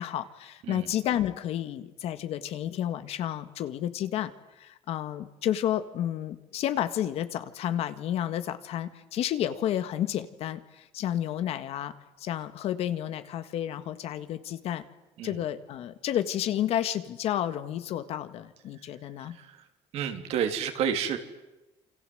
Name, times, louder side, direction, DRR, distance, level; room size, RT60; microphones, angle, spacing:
voice 1, 0.0-4.3 4.6-14.8 15.2-19.4, left 11 dB, 75° left, 11 dB, 1.8 m, -31 dB
voice 2, 0.6-0.9 15.2-15.4 19.2-19.7 19.9-21.2, right 8 dB, 75° right, 6 dB, 3.2 m, -31 dB
28.0 x 25.5 x 8.0 m, 0.99 s
cardioid pair, 145°, 11 cm